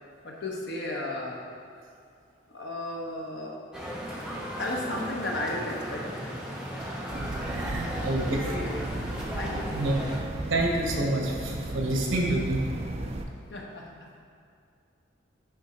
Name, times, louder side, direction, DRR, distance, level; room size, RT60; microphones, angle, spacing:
voice 1, 0.2-1.4 2.5-3.6 4.6-6.3 7.8-8.0 8.4-8.8 9.4-9.7 13.5-13.8, left 1 dB, 60° left, -2 dB, 1.1 m, -34 dB
sound 1, 3.7-10.2, equal, 5° right, 0.8 m, -36 dB
sound 2, 7.1-13.3, right 2 dB, 30° right, 0.5 m, -35 dB
voice 2, 7.4-8.5 9.7-10.0 10.5-12.6, right 1 dB, 85° right, 0 dB, 1.2 m, -28 dB
10.5 x 3.7 x 4.3 m, 2.3 s
head